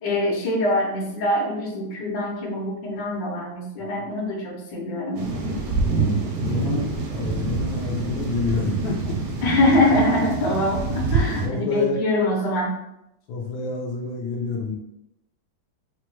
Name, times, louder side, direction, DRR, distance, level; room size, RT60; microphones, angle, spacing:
voice 1, 0.0-5.3 6.0-6.2 9.4-12.8, left 1 dB, 70° left, -2 dB, 1.5 m, -23 dB
sound 1, 5.1-11.5, right 3 dB, 65° right, 0.9 m, -26 dB
voice 2, 6.4-9.5 11.4-12.0 13.3-14.7, left 3 dB, 85° left, -3 dB, 1.4 m, -29 dB
4.6 x 2.3 x 3.0 m, 0.84 s
omnidirectional pair, 2.1 m